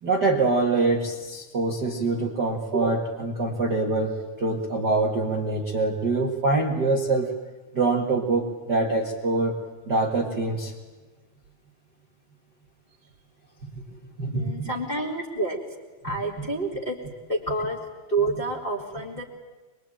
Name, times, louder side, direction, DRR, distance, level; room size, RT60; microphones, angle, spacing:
voice 1, 0.0-7.3 7.7-9.6 9.8-10.7 13.9-14.7 16.0-16.2, right 3 dB, 40° right, 0 dB, 1.7 m, -25 dB
voice 2, 14.3-15.6 16.0-17.0 17.3-17.8 18.1-19.2, right 2 dB, 20° left, 0 dB, 1.8 m, -28 dB
23.5 x 22.5 x 8.9 m, 1.3 s
omnidirectional pair, 4.2 m